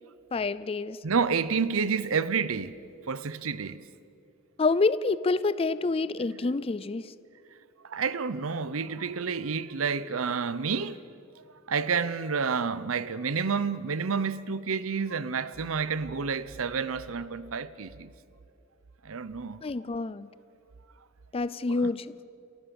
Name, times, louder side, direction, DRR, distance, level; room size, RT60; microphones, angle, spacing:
voice 1, 0.3-1.0 4.6-7.1 19.6-20.3 21.3-22.1, left 3 dB, 30° left, 0.4 m, -27 dB
voice 2, 1.0-2.8 3.1-3.9 7.8-11.0 11.7-18.1 19.0-19.6 21.7-21.9, right 5 dB, 85° right, 0.7 m, -29 dB
29.0 x 15.0 x 7.1 m
head